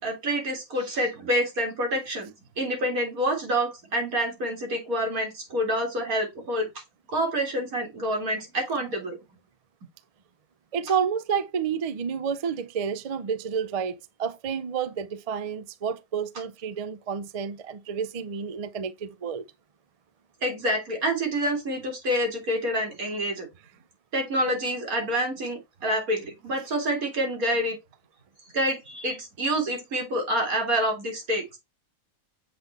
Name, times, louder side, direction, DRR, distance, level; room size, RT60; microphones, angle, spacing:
voice 1, 0.0-2.3 2.6-6.7 7.1-9.2 20.4-23.5 24.1-27.8 28.5-31.5, equal, 85° right, 2.8 m, -27 dB
voice 2, 10.7-19.5, right 7 dB, 55° right, 0.4 m, -30 dB
7.6 x 3.9 x 3.4 m
omnidirectional pair, 1.5 m